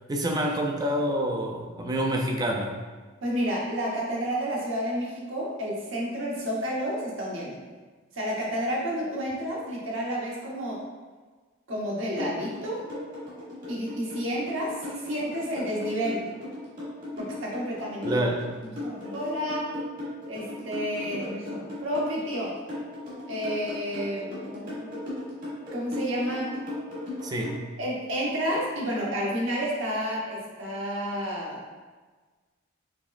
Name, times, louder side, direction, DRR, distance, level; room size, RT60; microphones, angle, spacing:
voice 1, 0.1-2.7 18.1-18.5 27.2-27.7, right 1 dB, 20° right, 2 dB, 0.3 m, -27 dB
voice 2, 3.2-7.6 8.1-10.8 11.7-12.8 13.7-16.2 17.2-18.2 18.8-19.7 20.3-22.5 23.3-25.0 25.7-26.5 27.8-31.6, equal, 70° right, -4 dB, 1.0 m, -30 dB
sound 1, 12.2-27.6, left 2 dB, 45° right, 1.4 m, -36 dB
4.9 x 3.1 x 2.4 m, 1.4 s
head